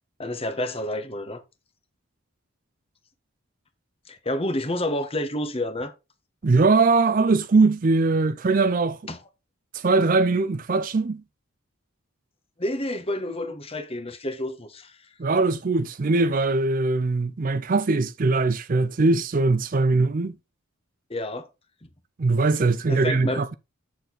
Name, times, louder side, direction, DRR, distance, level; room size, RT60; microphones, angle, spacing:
voice 1, 0.2-1.4 4.1-5.9 9.1-9.2 12.6-15.0 21.1-21.5 21.8-21.9 22.9-23.4, left 1 dB, 30° left, 1.2 m, -29 dB
voice 2, 6.4-9.0 9.7-11.2 15.2-20.3 22.2-23.5, right 3 dB, 40° right, 0.5 m, -21 dB
8.2 x 6.7 x 4.0 m
head